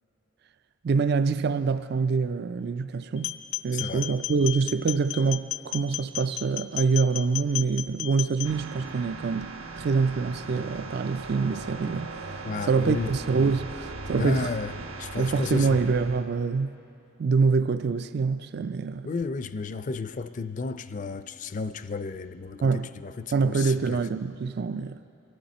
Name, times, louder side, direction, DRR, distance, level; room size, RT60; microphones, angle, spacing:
voice 1, 0.8-3.3 3.6-9.5 9.8-14.5 15.2-16.7 17.2-19.1 22.6-22.9 23.3-25.0, right 4 dB, 50° right, 0.4 m, -25 dB
sound 1, 3.2-8.5, left 14 dB, 85° left, 0.6 m, -34 dB
voice 2, 3.7-4.1 12.4-13.1 14.1-14.7 15.0-15.8 19.0-24.0, left 4 dB, 40° left, 0.4 m, -33 dB
sound 2, 8.4-16.2, right 3 dB, 85° right, 1.0 m, -39 dB
25.5 x 12.0 x 4.2 m
head